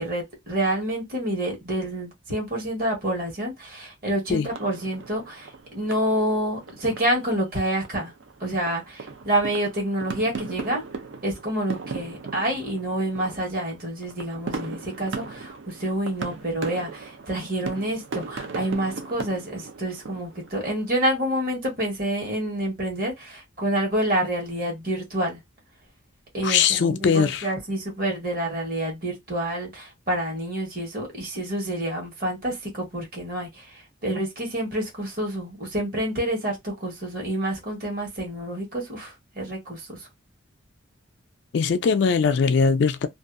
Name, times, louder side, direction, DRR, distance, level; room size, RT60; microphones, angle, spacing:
voice 1, 0.0-8.1 8.4-10.8 11.2-25.4 26.3-40.0, right 1 dB, 45° right, 1.3 m, -28 dB
sound 1, 4.5-21.0, right 4 dB, 70° right, 0.5 m, -38 dB
voice 2, 26.4-27.5 41.5-43.1, left 5 dB, 60° left, 0.3 m, -21 dB
2.6 x 2.3 x 2.4 m
head